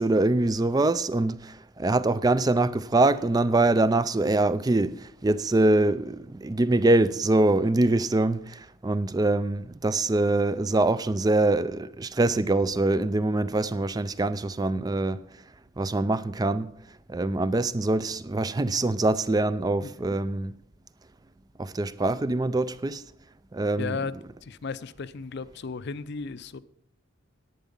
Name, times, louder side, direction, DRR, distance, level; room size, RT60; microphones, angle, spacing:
voice 1, 0.0-15.2 15.8-16.7 17.1-20.5 21.6-23.0 23.5-24.0, right 2 dB, 20° right, 0.4 m, -24 dB
voice 2, 23.8-24.1 24.4-26.6, left 4 dB, 55° left, 0.5 m, -34 dB
10.5 x 9.2 x 5.4 m
head